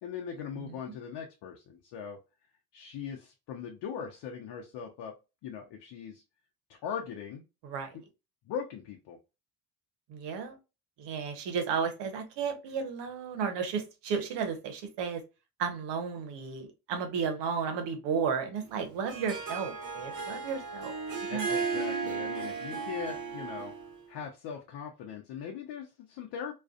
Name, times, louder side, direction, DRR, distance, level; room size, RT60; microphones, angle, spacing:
voice 1, 0.0-2.2 2.7-5.1 5.4-6.2 6.7-7.4 7.9-8.0 8.5-9.2 21.3-23.7 24.1-26.5, left 7 dB, 70° left, 1 dB, 0.7 m, -40 dB
voice 2, 10.1-10.6 11.0-15.2 15.6-20.9 21.3-21.5, right 6 dB, 75° right, 7 dB, 0.8 m, -33 dB
Harp, 18.7-24.0, right 5 dB, 45° right, 1.0 m, -35 dB
2.5 x 2.3 x 2.3 m, 0.28 s
supercardioid pair, 75°, 43 cm